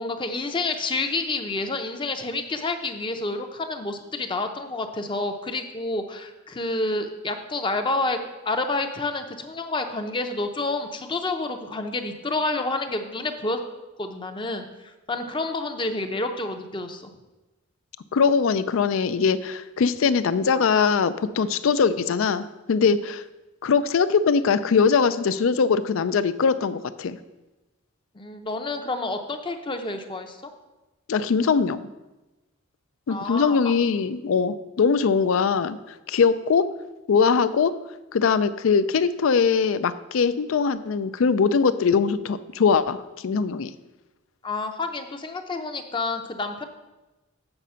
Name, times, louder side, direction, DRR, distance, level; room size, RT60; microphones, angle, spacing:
voice 1, 0.0-8.2 8.5-13.6 14.0-14.7 15.1-17.1 28.1-30.4 33.1-33.6 44.4-46.6, left 2 dB, 25° left, 6 dB, 0.6 m, -29 dB
voice 2, 18.1-23.2 23.6-27.2 31.1-31.9 33.1-35.8 36.1-36.7 37.1-37.7 38.1-43.7, left 5 dB, 70° left, 14 dB, 0.4 m, -21 dB
7.9 x 5.0 x 5.6 m, 1.1 s
head